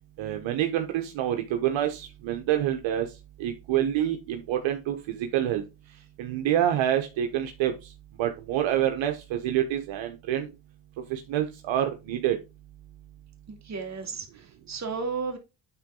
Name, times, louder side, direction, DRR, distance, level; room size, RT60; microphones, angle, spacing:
voice 1, 0.2-3.1 3.4-5.6 6.2-7.7 8.2-10.5 11.1-12.4, right 11 dB, 70° right, 1.1 m, -27 dB
voice 2, 13.5-15.4, right 4 dB, 35° right, 2.4 m, -34 dB
8.7 x 3.8 x 3.8 m
cardioid pair, 90°, 48 cm